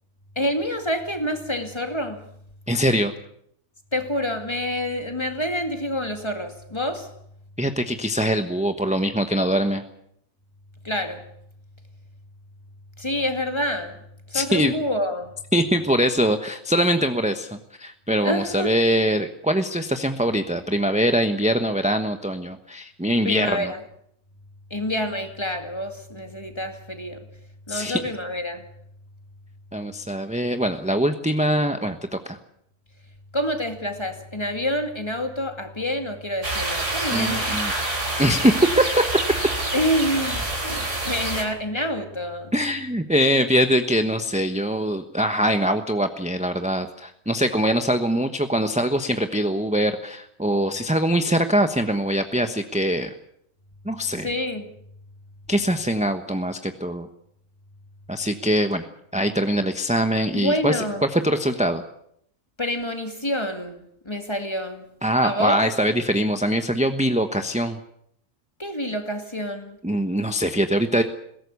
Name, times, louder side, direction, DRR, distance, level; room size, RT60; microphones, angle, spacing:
voice 1, 0.4-2.3 3.9-7.1 10.8-11.3 13.0-15.3 18.2-18.7 23.2-23.8 24.7-27.3 27.7-28.7 33.3-37.6 39.7-42.5 54.1-54.7 60.3-61.1 62.6-64.9 65.2-65.6 68.6-69.8, equal, 20° left, 2.2 m, -27 dB
voice 2, 2.7-3.1 7.6-9.8 14.3-14.7 15.5-23.7 27.7-28.0 29.7-32.4 37.1-37.7 38.2-39.0 42.5-53.1 53.8-54.3 55.5-57.1 58.1-58.8 59.1-60.8 61.1-61.8 65.0-67.8 69.8-71.0, equal, 5° right, 1.0 m, -23 dB
sound 1, 36.4-41.4, right 2 dB, 65° right, 4.1 m, -27 dB
21.5 x 17.5 x 8.3 m
omnidirectional pair, 1.4 m